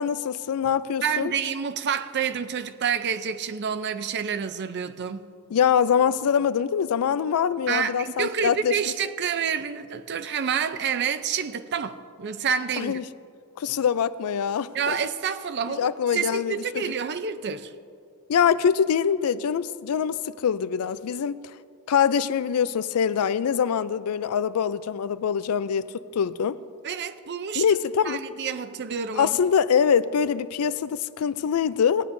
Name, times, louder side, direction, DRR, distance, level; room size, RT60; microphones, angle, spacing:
voice 1, 0.0-1.3 5.5-8.7 12.8-13.0 13.6-15.0 15.8-16.8 18.3-21.4 21.9-26.6 27.6-28.2 29.2-32.1, left 7 dB, 90° left, 0.4 m, -24 dB
voice 2, 1.0-5.3 7.7-13.0 14.7-17.7 26.8-27.6 28.0-29.4, right 7 dB, 50° right, 0.5 m, -28 dB
18.5 x 10.0 x 2.6 m
head